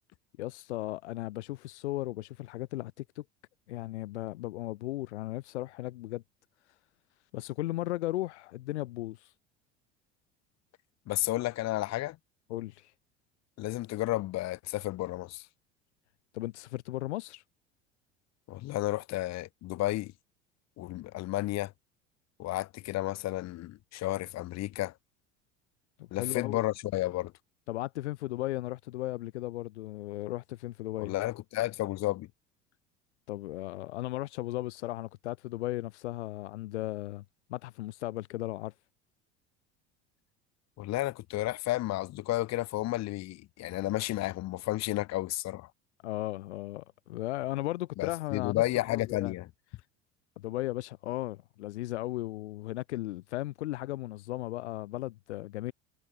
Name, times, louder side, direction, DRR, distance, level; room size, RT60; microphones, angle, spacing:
voice 1, 0.4-3.2 3.7-6.2 7.3-9.3 12.5-12.9 16.3-17.4 26.0-26.6 27.7-31.1 33.3-37.2 37.5-38.7 46.0-49.3 50.4-55.7, left 17 dB, 80° left, 4.5 m, -36 dB
voice 2, 11.1-12.2 13.6-15.5 18.5-20.1 20.8-21.7 22.4-24.9 26.1-27.3 31.0-32.3 40.8-45.7 48.0-49.5, left 17 dB, 50° left, 1.3 m, -32 dB
hypercardioid pair, 75°, 34 cm